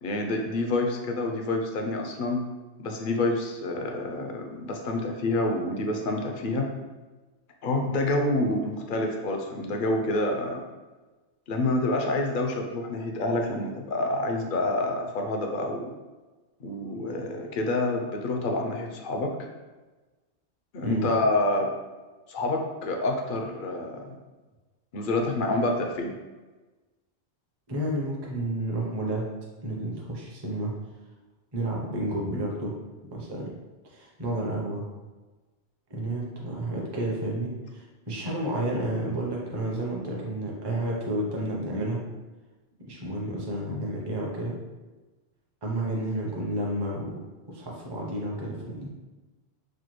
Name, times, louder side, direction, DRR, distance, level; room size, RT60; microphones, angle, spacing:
voice 1, 0.0-2.4 2.8-6.7 7.6-10.6 11.5-15.9 16.6-19.3 20.7-21.7 22.3-24.2 24.9-26.1, left 2 dB, 60° left, 2 dB, 0.6 m, -27 dB
voice 2, 27.7-29.3 29.6-30.7 31.5-32.8 33.1-33.5 33.9-34.8 35.9-42.1 42.8-44.6 45.6-48.9, right 1 dB, 30° right, -3 dB, 0.6 m, -31 dB
4.3 x 2.3 x 3.0 m, 1.2 s
omnidirectional pair, 1.1 m